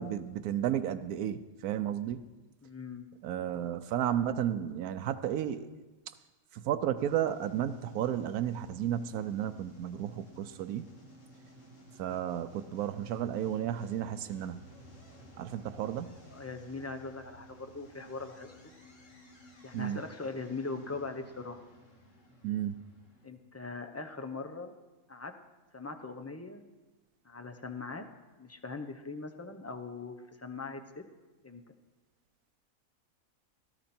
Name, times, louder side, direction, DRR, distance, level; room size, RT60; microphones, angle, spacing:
voice 1, 0.0-2.2 3.2-5.7 6.6-10.8 12.0-14.6 15.4-16.2 19.7-20.0 22.4-22.7, right 10 dB, 90° right, 10 dB, 1.1 m, -33 dB
voice 2, 2.6-3.1 16.3-18.7 19.6-21.6 23.2-24.7 25.1-25.3 25.7-26.6 27.2-28.0 28.4-31.0 31.4-31.6, left 3 dB, 15° left, 5 dB, 0.7 m, -41 dB
sound 1, 7.0-23.3, equal, 60° left, 2.3 m, -55 dB
16.5 x 13.0 x 4.3 m, 1.2 s
omnidirectional pair, 1.5 m